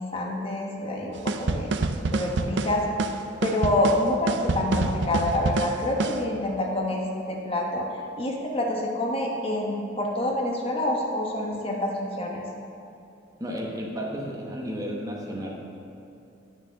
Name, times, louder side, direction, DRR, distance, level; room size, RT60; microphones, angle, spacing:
voice 1, 0.0-1.7 2.1-2.9 3.4-7.9 8.2-12.4, left 1 dB, 30° left, -1 dB, 1.2 m, -27 dB
sound 1, 1.3-6.2, right 3 dB, 70° right, 0.5 m, -27 dB
voice 2, 13.4-15.5, equal, 20° right, -1 dB, 1.1 m, -32 dB
9.1 x 6.2 x 6.7 m, 2.8 s
head